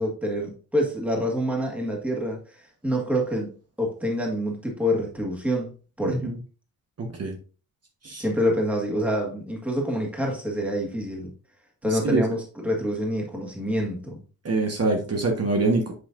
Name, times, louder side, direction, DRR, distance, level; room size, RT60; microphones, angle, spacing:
voice 1, 0.0-3.5 3.8-6.3 8.2-11.3 11.8-14.2, equal, 5° right, -1 dB, 1.7 m, -27 dB
voice 2, 6.1-6.4 7.0-7.4 8.0-8.2 11.9-12.2 14.4-15.8, right 3 dB, 45° right, 1 dB, 1.3 m, -24 dB
8.0 x 5.6 x 2.6 m, 0.37 s
wide cardioid pair, 165°, 34 cm